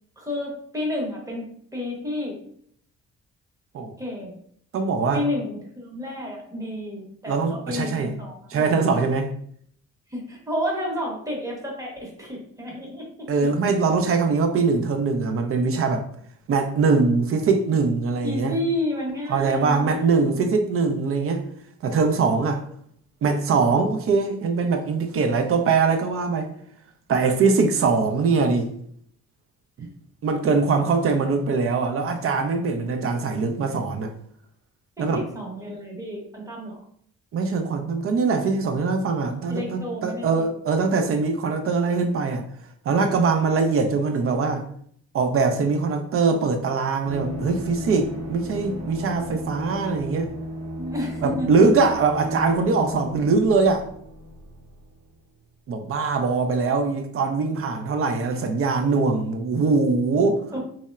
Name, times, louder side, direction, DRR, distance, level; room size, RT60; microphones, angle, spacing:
voice 1, 0.2-2.4 4.0-4.3 5.1-9.0 10.1-13.5 18.2-20.5 29.8-29.9 35.0-36.8 39.5-40.5 50.8-51.7 60.5-60.6, left 1 dB, 10° right, 0.8 m, -31 dB
voice 2, 4.7-5.2 7.3-8.1 8.5-9.3 13.3-16.1 16.5-18.6 19.3-21.4 21.8-22.6 23.2-26.5 27.1-28.7 29.8-29.9 30.2-34.1 35.0-35.2 37.3-42.4 42.9-44.6 45.1-50.3 51.2-53.8 55.7-60.4, right 4 dB, 50° right, 0.4 m, -22 dB
sound 1, 47.0-55.6 55.8-55.9, equal, 70° right, 0.8 m, -35 dB
2.9 x 2.1 x 2.3 m
cardioid pair, 90°, 30 cm